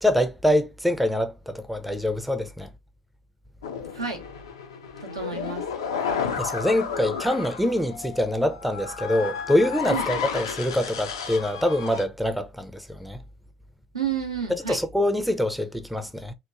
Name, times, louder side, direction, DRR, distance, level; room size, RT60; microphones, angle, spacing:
voice 1, 0.0-2.7 6.4-13.2 14.5-16.3, left 1 dB, ahead, 0.4 m, -25 dB
sound 1, 3.6-12.1, left 6 dB, 75° left, 0.3 m, -32 dB
voice 2, 3.9-4.2 5.0-5.7 9.9-10.1 13.9-14.8, right 7 dB, 85° right, 0.6 m, -30 dB
2.9 x 2.1 x 2.4 m
figure-of-eight pair, 60°, 2 cm